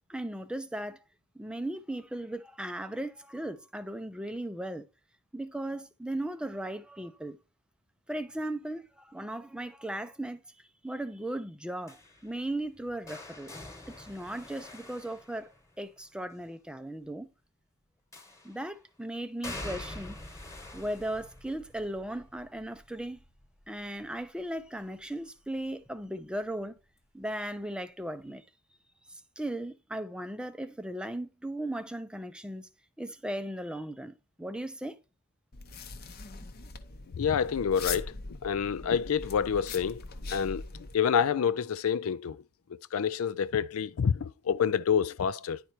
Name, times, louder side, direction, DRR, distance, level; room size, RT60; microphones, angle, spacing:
voice 1, 0.1-1.0 1.4-4.9 5.3-7.4 8.1-10.4 10.8-13.5 13.9-15.5 15.8-17.3 18.4-20.2 20.7-23.2 23.7-26.7 27.1-28.4 29.1-32.7 33.0-35.0, right 1 dB, 5° right, 0.5 m, -37 dB
sound 1, 11.9-15.9 18.1-18.7 19.4-25.2 25.6-26.0 27.2-27.3, left 1 dB, 15° left, 1.3 m, -46 dB
sound 2, 35.5-41.0, left 4 dB, 45° left, 0.8 m, -41 dB
voice 2, 37.1-40.0 40.3-40.7 40.9-42.4 42.7-45.6, left 7 dB, 70° left, 0.4 m, -28 dB
10.0 x 4.6 x 4.3 m
head